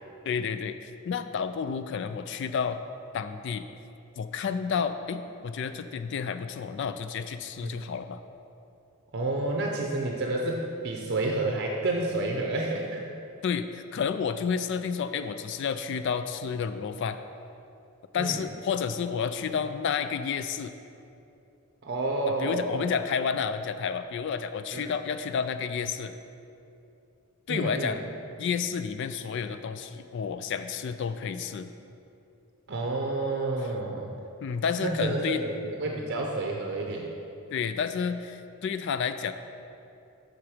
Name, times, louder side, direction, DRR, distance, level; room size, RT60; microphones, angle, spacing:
voice 1, 0.2-2.8 3.1-3.7 4.2-8.2 13.4-17.2 18.1-20.7 22.3-26.2 27.5-28.0 28.4-31.7 34.4-35.4 37.5-39.3, left 6 dB, 55° left, 10 dB, 0.3 m, -30 dB
voice 2, 9.1-13.0 18.2-18.4 21.8-22.9 24.7-24.9 27.5-28.0 32.7-34.1 34.8-37.1, right 2 dB, 50° right, 0 dB, 0.6 m, -30 dB
7.5 x 6.1 x 4.9 m, 2.7 s
head